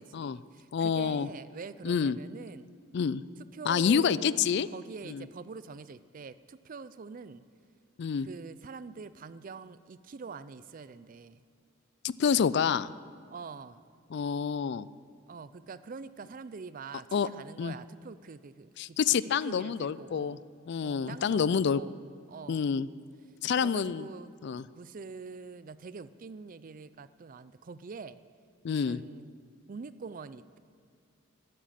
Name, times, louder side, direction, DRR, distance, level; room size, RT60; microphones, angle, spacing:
voice 1, 0.0-2.7 3.5-4.4 4.7-7.4 8.2-11.4 13.3-13.8 15.3-19.0 19.2-20.4 20.8-21.9 22.3-22.6 23.6-24.3 24.7-28.2 28.7-29.4 29.7-30.6, right 4 dB, 40° right, 15 dB, 0.4 m, -45 dB
voice 2, 0.7-1.3 1.8-2.2 2.9-3.2 3.7-4.7 5.1-5.3 8.0-8.3 12.0-12.9 14.1-14.9 17.1-17.3 17.6-17.7 18.8-20.4 20.7-21.8 22.5-22.9 23.4-24.1 24.4-24.6 28.6-29.0, left 6 dB, 55° left, 18 dB, 0.3 m, -28 dB
12.0 x 11.5 x 7.5 m, 2.3 s
head